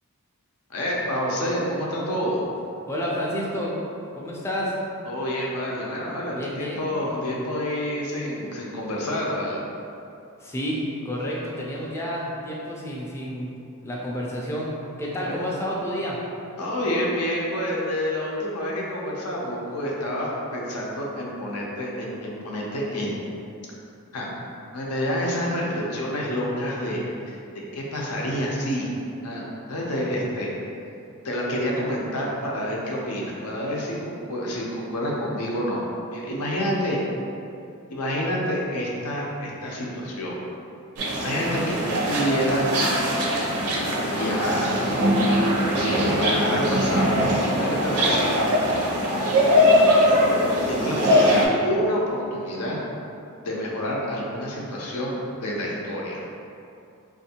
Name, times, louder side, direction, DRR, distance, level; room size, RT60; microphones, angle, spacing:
voice 1, 0.7-2.4 5.1-9.6 15.3-15.4 16.6-23.2 24.1-24.3 24.7-27.0 27.3-27.4 27.7-28.9 29.2-30.5 31.2-35.8 36.1-37.0 37.9-40.4 41.2-42.8 44.1-44.7 45.3-47.1 47.5-48.3 50.7-52.8 53.4-55.1 55.4-56.2, equal, 85° left, -3 dB, 0.6 m, -28 dB
voice 2, 2.9-3.7 4.1-4.7 6.3-6.8 10.4-13.5 13.8-14.7 15.0-16.2 51.1-51.3, equal, 10° left, -5 dB, 0.3 m, -30 dB
sound 1, 41.0-51.4, equal, 80° right, 0.6 m, -21 dB
3.3 x 2.5 x 2.8 m, 2.7 s
head